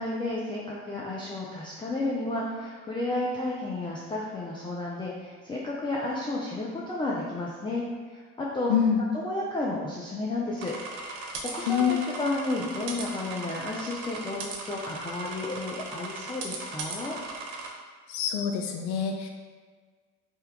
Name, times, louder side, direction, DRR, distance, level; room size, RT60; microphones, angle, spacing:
voice 1, 0.0-7.8 8.1-8.7 9.1-10.7 11.0-17.2, left 2 dB, 10° left, -4 dB, 0.3 m, -32 dB
voice 2, 8.7-9.0 11.7-12.0 18.1-19.3, left 8 dB, 70° left, 3 dB, 0.5 m, -26 dB
sound 1, 10.6-17.7, right 3 dB, 75° right, 0.7 m, -38 dB
2.8 x 2.2 x 3.4 m, 1.5 s
hypercardioid pair, 65°, 44 cm